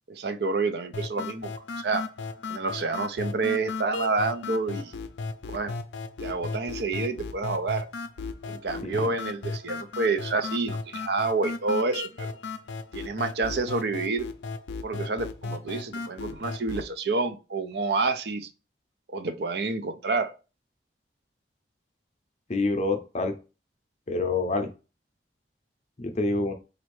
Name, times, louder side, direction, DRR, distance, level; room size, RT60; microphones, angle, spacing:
voice 1, 0.1-1.5 1.8-2.0 2.5-4.9 5.5-5.7 6.2-7.9 8.5-12.3 12.9-14.3 14.8-18.5 19.1-20.3, right 3 dB, 65° right, 0.5 m, -28 dB
sound 1, 0.9-16.9, left 3 dB, 90° left, 0.4 m, -35 dB
voice 2, 22.5-23.3 24.1-24.7 26.0-26.5, left 3 dB, 35° left, 0.5 m, -27 dB
4.2 x 2.6 x 3.1 m
head